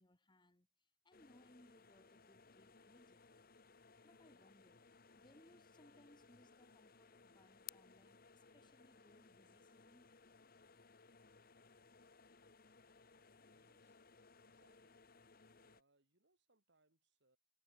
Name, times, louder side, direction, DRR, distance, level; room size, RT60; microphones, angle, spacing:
voice 1, 0.0-3.4 4.0-4.9 5.2-10.1, left 1 dB, 25° left, 2.2 m, -68 dB
sound 1, 1.1-15.8, left 6 dB, 50° left, 1.5 m, -63 dB
voice 2, 13.5-14.0 14.4-15.0 15.6-17.4, right 2 dB, 60° right, 3.8 m, -79 dB
head